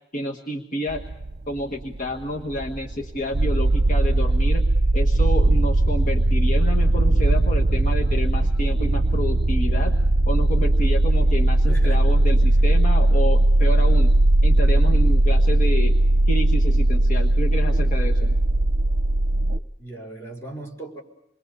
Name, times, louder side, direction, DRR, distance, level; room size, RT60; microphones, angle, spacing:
voice 1, 0.1-1.0 1.5-4.7 4.9-9.9 10.2-14.1 14.4-16.0 16.3-18.3, left 1 dB, 45° left, 2 dB, 1.5 m, -29 dB
sound 1, 0.9-19.6, right 1 dB, 60° right, 0.8 m, -19 dB
voice 2, 11.7-12.0 12.6-12.7 19.3-19.4 19.8-21.0, right 1 dB, 15° left, 0 dB, 5.1 m, -38 dB
28.0 x 22.5 x 6.8 m, 0.83 s
head